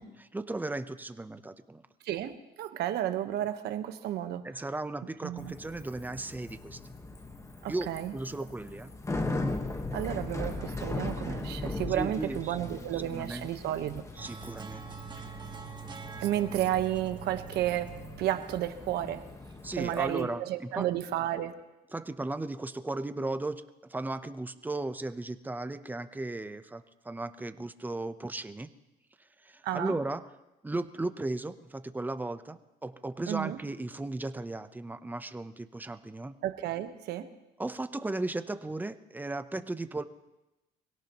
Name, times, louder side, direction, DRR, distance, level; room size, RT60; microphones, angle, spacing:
voice 1, 0.0-1.8 4.4-6.8 7.7-8.9 11.2-11.4 11.9-13.5 14.2-14.9 19.6-20.9 21.9-28.7 29.4-30.3 30.6-36.4 37.6-40.0, right 2 dB, 10° right, 10 dB, 0.8 m, -36 dB
voice 2, 2.0-4.5 5.2-5.5 7.6-8.1 9.9-14.0 16.2-19.3 19.8-21.6 29.6-29.9 33.3-33.6 36.4-37.3, right 12 dB, 75° right, 9 dB, 1.2 m, -32 dB
Bicycle, 5.4-20.2, left 2 dB, 15° left, 1.3 m, -39 dB
sound 1, 14.2-19.5, right 7 dB, 25° right, 1.4 m, -45 dB
25.0 x 17.5 x 3.0 m, 1.0 s
cardioid pair, 110°, 17 cm